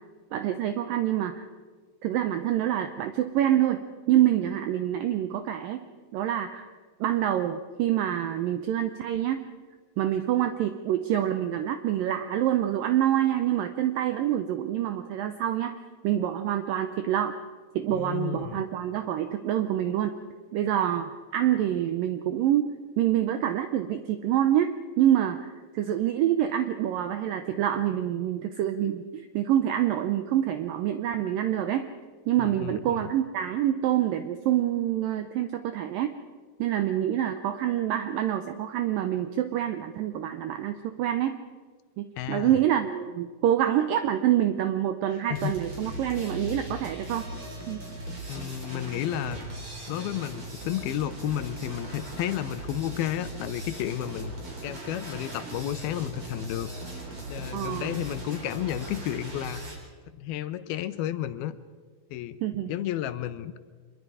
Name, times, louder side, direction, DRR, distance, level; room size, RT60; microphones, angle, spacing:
voice 1, 0.3-1.4 2.0-3.8 4.1-5.9 6.1-6.7 7.0-9.4 10.0-15.8 16.0-17.3 17.8-20.2 20.5-31.9 32.3-36.1 36.6-41.4 42.0-47.3 47.7-47.8 57.5-58.0 62.4-62.7, right 11 dB, 75° right, 8 dB, 2.1 m, -26 dB
voice 2, 17.9-18.6 32.4-33.1 42.2-42.6 45.3-45.5 48.3-49.4 49.9-54.3 54.6-56.7 57.3-59.6 60.1-61.6 62.1-62.4 62.7-63.5, left 12 dB, 75° left, 12 dB, 2.5 m, -32 dB
sound 1, 45.3-59.7, right 1 dB, 30° right, 4.6 m, -39 dB
25.5 x 22.0 x 4.9 m, 1.5 s
omnidirectional pair, 4.7 m